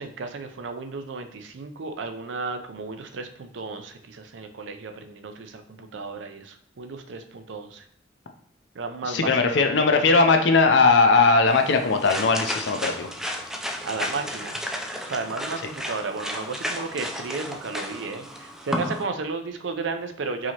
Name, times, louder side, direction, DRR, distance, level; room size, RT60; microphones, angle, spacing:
voice 1, 0.0-7.8 8.8-9.3 13.8-14.6 15.1-20.5, right 4 dB, 75° right, 6 dB, 0.5 m, -33 dB
voice 2, 9.0-13.1, left 4 dB, 65° left, 6 dB, 0.5 m, -19 dB
sound 1, 11.5-19.0, equal, 5° right, 0.3 m, -33 dB
4.7 x 2.8 x 2.9 m, 0.66 s
head